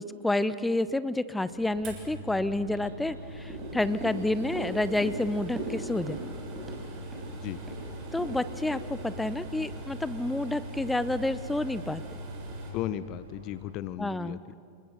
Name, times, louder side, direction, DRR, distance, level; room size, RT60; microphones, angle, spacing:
voice 1, 0.0-6.2 8.1-12.0 14.0-14.5, left 2 dB, 5° left, 15 dB, 0.7 m, -29 dB
sound 1, 1.4-13.7, right 1 dB, 75° right, 6.2 m, -48 dB
sound 2, 1.8-12.7, right 1 dB, 40° right, 6.5 m, -41 dB
sound 3, 3.5-9.9 10.3-10.4, right 1 dB, 15° right, 5.8 m, -40 dB
voice 2, 12.7-14.5, left 13 dB, 40° left, 17 dB, 0.7 m, -35 dB
29.0 x 20.0 x 6.8 m, 2.3 s
figure-of-eight pair, 90°, 0 cm